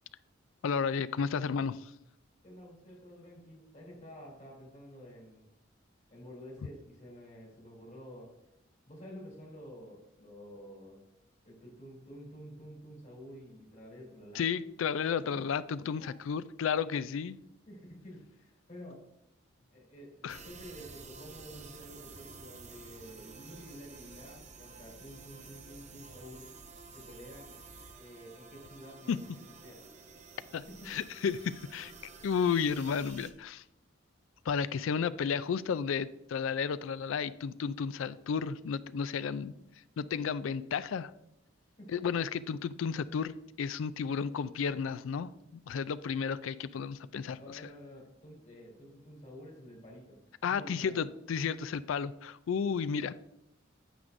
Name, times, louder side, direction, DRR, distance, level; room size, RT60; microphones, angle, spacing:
voice 1, 0.6-1.9 14.3-17.4 20.2-20.4 29.1-29.2 30.5-31.9 32.2-33.6 34.5-39.5 40.0-41.1 41.9-45.3 45.7-47.6 50.4-53.2, left 6 dB, 80° left, 15 dB, 0.4 m, -32 dB
voice 2, 2.4-5.5 6.1-8.3 8.9-11.0 11.4-14.5 16.0-16.1 17.7-19.0 19.7-26.5 26.9-27.6 28.0-29.8 30.7-30.9 41.8-41.9 47.0-51.0, equal, 35° left, -3 dB, 3.0 m, -50 dB
sound 1, 20.3-33.3, right 4 dB, 35° right, 0.7 m, -51 dB
9.3 x 7.8 x 2.6 m, 0.81 s
head